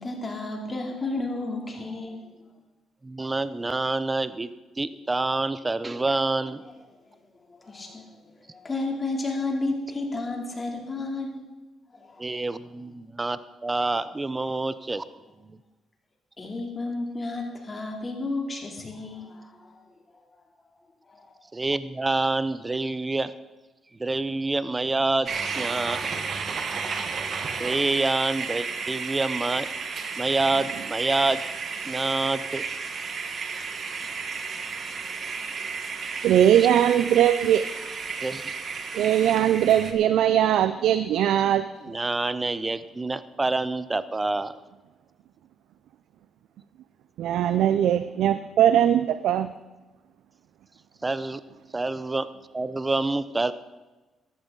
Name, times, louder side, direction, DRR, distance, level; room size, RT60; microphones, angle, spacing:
voice 1, 0.0-2.3 7.0-7.1 7.5-8.1 8.5-11.4 11.9-12.3 16.4-19.7 21.1-21.4, left 2 dB, 30° left, 1 dB, 3.0 m, -32 dB
voice 2, 3.0-4.5 4.8-6.6 12.2-15.0 15.4-15.6 21.5-23.3 24.0-26.0 27.6-29.7 30.2-31.5 31.9-32.6 36.5-36.7 38.2-38.5 41.8-44.5 51.0-51.4 51.7-52.3 52.5-53.5, right 2 dB, 20° right, 14 dB, 0.7 m, -27 dB
sound 1, 25.3-39.9, right 5 dB, 50° right, 1.4 m, -33 dB
voice 3, 36.2-37.7 38.9-41.7 47.2-49.5, right 10 dB, 80° right, 12 dB, 0.4 m, -20 dB
14.5 x 11.5 x 3.9 m, 1.2 s
cardioid pair, 90°, 0 cm